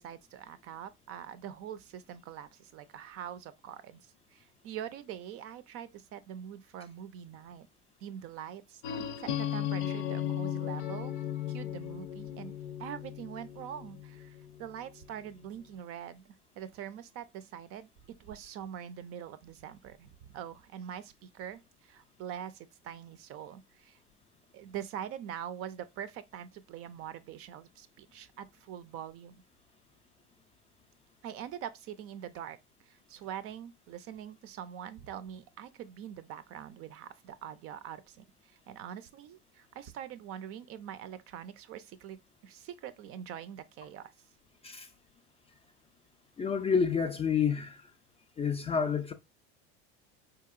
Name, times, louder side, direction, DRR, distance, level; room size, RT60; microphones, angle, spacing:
voice 1, 0.0-7.7 8.0-11.2 11.5-16.3 16.6-17.9 18.2-24.0 24.5-29.4 31.2-44.1, right 9 dB, 45° right, 0.4 m, -44 dB
sound 1, 8.8-14.6, left 10 dB, 85° left, 0.6 m, -36 dB
voice 2, 46.4-47.8 48.4-49.1, left 6 dB, 20° left, 0.3 m, -29 dB
4.3 x 2.8 x 2.3 m
supercardioid pair, 110°, 32 cm